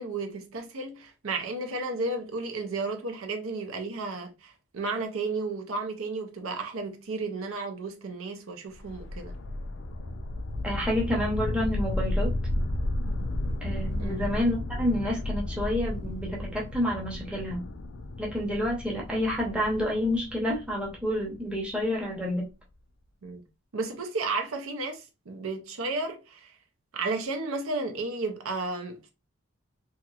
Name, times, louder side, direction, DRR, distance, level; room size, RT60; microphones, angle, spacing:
voice 1, 0.0-9.4 14.0-14.3 23.2-23.4 23.7-26.5 26.9-29.1, right 3 dB, 70° right, 0.6 m, -33 dB
sound 1, 8.7-21.8, left 1 dB, 60° left, 0.4 m, -33 dB
voice 2, 10.6-12.3 13.6-17.6 18.2-22.5, left 1 dB, 5° right, 0.8 m, -29 dB
2.9 x 2.8 x 2.3 m
head